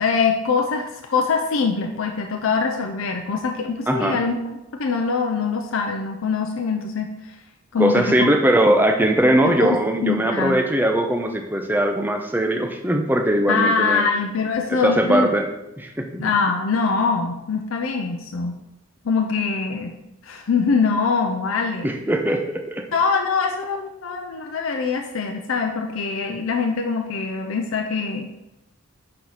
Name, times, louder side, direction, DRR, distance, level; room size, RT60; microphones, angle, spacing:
voice 1, 0.0-4.4 4.8-7.1 7.7-8.3 9.6-9.8 10.0-10.6 13.5-15.3 16.2-18.6 19.0-19.9 20.2-21.9 22.9-28.3, left 5 dB, 75° left, 3 dB, 0.5 m, -23 dB
voice 2, 3.9-4.2 7.8-14.1 14.7-15.5 15.8-16.2 21.8-22.8, right 1 dB, 10° right, 4 dB, 0.5 m, -20 dB
6.4 x 4.3 x 4.1 m, 0.93 s
head